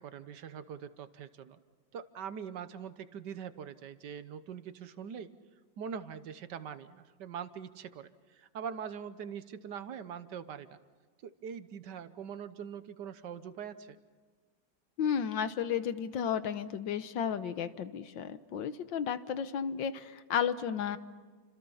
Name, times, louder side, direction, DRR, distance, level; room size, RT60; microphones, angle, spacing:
voice 1, 0.0-1.6 1.9-5.3 5.8-10.8 11.2-14.0, right 7 dB, 70° right, 12 dB, 1.5 m, -43 dB
voice 2, 15.0-21.0, left 8 dB, 85° left, 12 dB, 1.7 m, -33 dB
30.0 x 26.5 x 5.6 m, 1.5 s
omnidirectional pair, 2.0 m